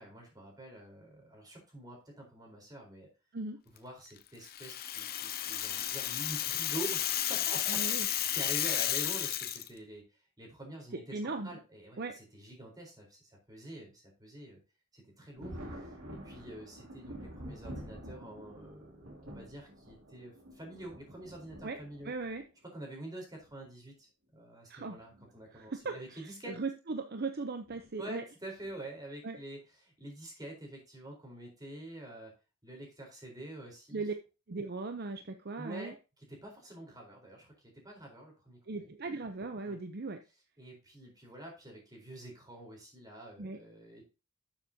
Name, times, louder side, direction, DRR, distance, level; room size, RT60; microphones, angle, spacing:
voice 1, 0.0-3.1 3.7-10.0 10.4-14.6 14.9-22.1 22.7-26.6 28.0-32.3 32.6-34.0 35.6-35.9 36.3-37.5 37.8-38.9 39.6-39.8 40.6-44.0, right 1 dB, 20° right, 0 dB, 4.2 m, -47 dB
Rattle (instrument), 4.4-9.7, left 11 dB, 45° left, 0.8 m, -33 dB
voice 2, 7.7-8.1 11.1-11.5 12.0-12.2 21.6-21.8 22.0-22.4 24.7-25.0 25.5-28.2 29.2-29.4 33.9-34.1 34.5-35.9 38.7-40.2 43.4-43.6, right 3 dB, 45° right, 7 dB, 0.7 m, -38 dB
Thunder, 15.4-22.4 23.4-23.5 25.0-25.2 25.6-25.7 27.7-27.9 28.6-28.9, equal, 85° right, 2.9 m, -48 dB
12.0 x 7.3 x 2.8 m, 0.30 s
head